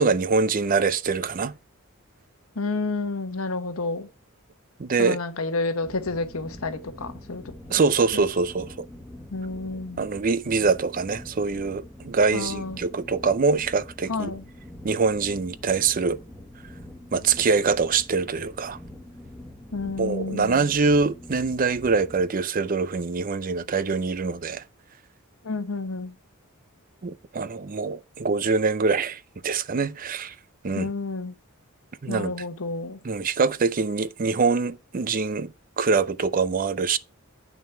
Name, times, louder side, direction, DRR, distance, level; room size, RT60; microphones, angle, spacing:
voice 1, 0.0-1.5 4.8-5.2 7.7-8.9 10.0-14.3 14.8-16.2 17.1-18.8 20.0-24.6 27.0-30.3 30.6-30.9 32.0-32.3 33.0-35.5 35.8-37.0, right 4 dB, 40° right, 0.5 m, -24 dB
voice 2, 2.6-4.1 5.0-7.5 8.1-8.2 9.3-10.0 12.3-12.8 14.1-14.4 19.7-20.7 25.4-26.1 30.7-31.3 32.1-33.0, left 3 dB, 80° left, 1.2 m, -30 dB
sound 1, 5.8-22.2, left 1 dB, ahead, 1.6 m, -44 dB
8.5 x 6.2 x 4.5 m
head